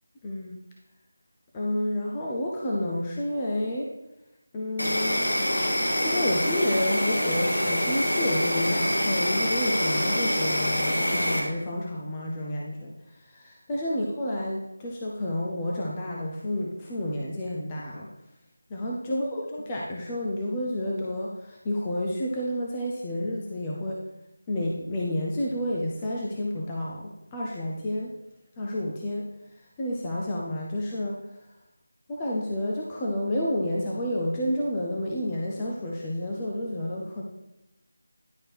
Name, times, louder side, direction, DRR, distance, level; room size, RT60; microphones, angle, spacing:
voice 1, 0.2-0.6 1.5-3.9 4.5-5.3 6.0-18.1 18.7-24.0 24.5-28.1 28.6-29.2 29.6-31.2 32.1-37.2, left 1 dB, 15° left, -3 dB, 0.5 m, -30 dB
Insect, 4.8-11.4, equal, 90° left, 1.8 m, -25 dB
10.5 x 4.5 x 3.3 m, 0.91 s
figure-of-eight pair, 175°, 0 cm